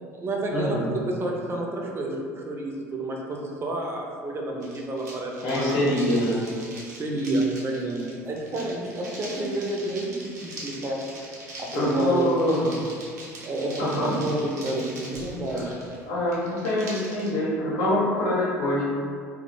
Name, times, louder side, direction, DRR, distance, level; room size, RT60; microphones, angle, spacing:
voice 1, 0.0-5.9 7.0-11.0 11.6-12.7 13.4-15.7, right 1 dB, 30° right, -1 dB, 0.5 m, -29 dB
voice 2, 0.5-0.9 5.4-6.4 11.7-12.7 13.8-14.1 15.5-15.6 16.1-18.8, left 1 dB, 60° left, -7 dB, 0.9 m, -25 dB
sound 1, 4.6-17.3, right 1 dB, 85° right, 0.5 m, -42 dB
2.1 x 2.0 x 3.0 m, 2.1 s
hypercardioid pair, 65°, 8 cm